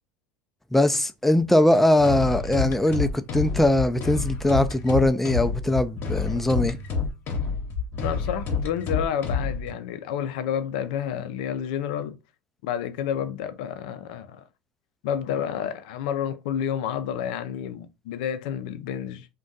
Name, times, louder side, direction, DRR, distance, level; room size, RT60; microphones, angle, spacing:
voice 1, 0.7-6.8, left 1 dB, 5° left, 0.3 m, -21 dB
sound 1, 2.0-9.7, left 5 dB, 50° left, 0.8 m, -28 dB
voice 2, 8.0-12.2 12.6-14.4 15.0-19.3, left 9 dB, 75° left, 0.4 m, -30 dB
2.5 x 2.2 x 3.8 m
hypercardioid pair, 90°, 5 cm